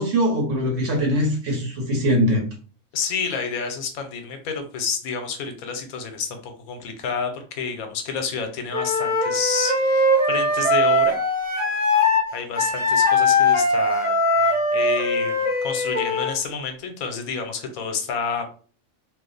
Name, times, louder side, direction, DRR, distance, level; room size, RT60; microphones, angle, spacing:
voice 1, 0.0-2.5, equal, 60° right, 1 dB, 1.2 m, -22 dB
voice 2, 2.9-11.2 12.3-18.4, left 5 dB, 80° left, 5 dB, 1.1 m, -29 dB
Wind instrument woodwind instrument, 8.7-12.3 12.5-16.4, left 2 dB, 10° right, 0.8 m, -20 dB
2.8 x 2.1 x 3.8 m, 0.41 s
omnidirectional pair, 1.5 m